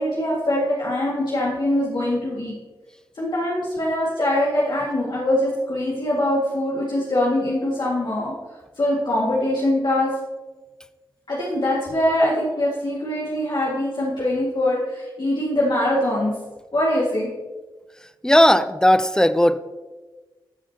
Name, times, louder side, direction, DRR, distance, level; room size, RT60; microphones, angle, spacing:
voice 1, 0.0-2.6 3.1-8.3 8.8-10.1 11.3-16.3 16.7-17.3, left 1 dB, 60° left, -6 dB, 2.0 m, -23 dB
voice 2, 18.2-19.6, left 1 dB, 10° left, 13 dB, 0.5 m, -16 dB
13.5 x 6.0 x 2.8 m, 1.2 s
cardioid pair, 50°, 9 cm